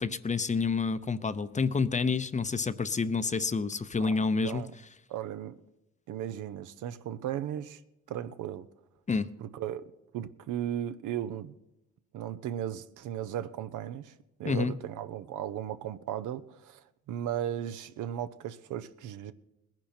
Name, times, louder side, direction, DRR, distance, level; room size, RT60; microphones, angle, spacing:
voice 1, 0.0-4.6 9.1-9.3 14.4-14.7, left 4 dB, 25° left, 0.6 m, -28 dB
voice 2, 4.0-4.7 5.1-5.6 6.1-7.8 8.1-8.7 9.4-9.9 10.1-11.6 12.1-14.1 14.4-19.3, right 10 dB, 80° right, 0.7 m, -36 dB
19.5 x 10.5 x 4.4 m
cardioid pair, 90°, 30 cm